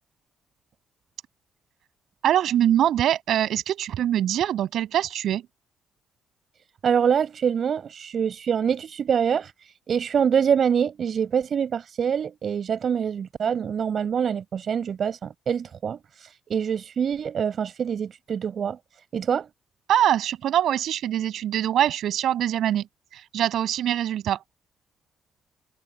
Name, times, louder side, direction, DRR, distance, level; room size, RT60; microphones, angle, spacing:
voice 1, 2.2-5.4 19.9-22.9 23.1-24.4, right 11 dB, 75° right, 7.5 m, -23 dB
voice 2, 6.8-9.5 9.9-16.0 16.5-18.8 19.1-19.5, right 7 dB, 55° right, 5.5 m, -25 dB
cardioid pair, 90°, 0 cm